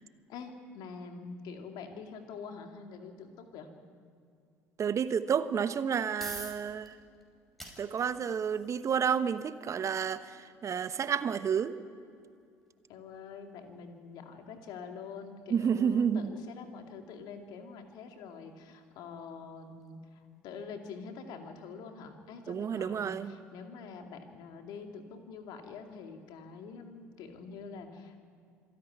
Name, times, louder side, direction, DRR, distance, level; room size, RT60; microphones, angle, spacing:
voice 1, 0.3-3.7 12.9-28.2, left 5 dB, 60° left, 5 dB, 2.4 m, -45 dB
voice 2, 4.8-7.0 7.8-11.7 15.5-16.3 22.5-23.3, right 7 dB, 40° right, 13 dB, 1.0 m, -30 dB
sound 1, 5.7-20.6, right 1 dB, ahead, 5.7 m, -54 dB
26.0 x 10.5 x 9.6 m, 2.4 s
hypercardioid pair, 60°, 8 cm